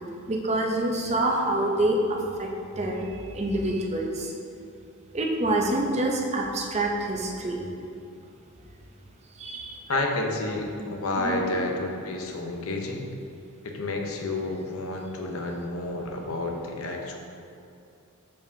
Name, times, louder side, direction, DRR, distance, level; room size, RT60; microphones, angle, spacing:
voice 1, 0.3-2.5 2.8-4.3 5.1-7.6 9.4-9.8 11.2-11.6, right 1 dB, 30° right, 0 dB, 0.6 m, -26 dB
voice 2, 9.9-13.1 13.6-17.2, left 2 dB, 65° left, 2 dB, 0.7 m, -30 dB
7.0 x 4.9 x 2.7 m, 2.6 s
head